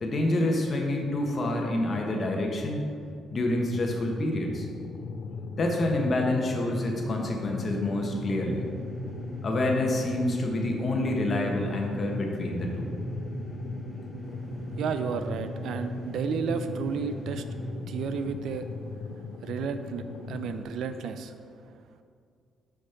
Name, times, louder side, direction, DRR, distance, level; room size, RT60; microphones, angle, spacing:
voice 1, 0.0-2.8 3.3-4.7 5.6-8.7 9.4-12.9, left 1 dB, 45° left, 1 dB, 1.3 m, -27 dB
sound 1, 3.7-20.6, left 4 dB, 80° left, 0.5 m, -39 dB
sound 2, 6.5-17.7, right 1 dB, ahead, 1.0 m, -39 dB
voice 2, 14.8-17.4 17.9-18.7 19.4-21.3, right 6 dB, 75° right, 9 dB, 0.4 m, -32 dB
6.3 x 5.2 x 5.8 m, 2.3 s
cardioid pair, 90°, 0 cm